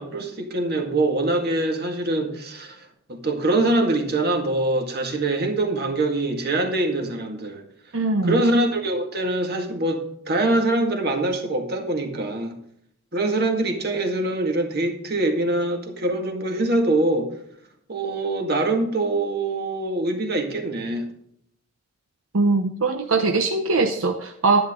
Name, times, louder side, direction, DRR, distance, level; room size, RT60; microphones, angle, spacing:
voice 1, 0.0-7.6 8.2-12.6 13.1-17.3 17.9-21.1, right 2 dB, 50° right, 4 dB, 2.0 m, -24 dB
voice 2, 7.9-8.4 22.3-24.6, right 3 dB, 80° right, 5 dB, 0.9 m, -21 dB
11.0 x 11.0 x 3.8 m, 0.71 s
head